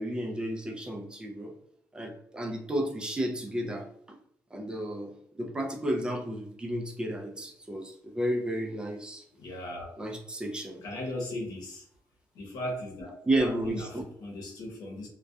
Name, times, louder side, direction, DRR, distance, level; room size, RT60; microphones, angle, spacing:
voice 1, 0.0-1.5 1.9-4.2 4.5-9.3 10.0-10.8 13.3-14.0, right 1 dB, 15° right, 1 dB, 0.3 m, -32 dB
voice 2, 9.4-10.0 10.8-11.8 12.3-15.1, left 1 dB, 85° left, -1 dB, 0.8 m, -38 dB
2.6 x 2.1 x 2.2 m, 0.71 s
cardioid pair, 145°, 6 cm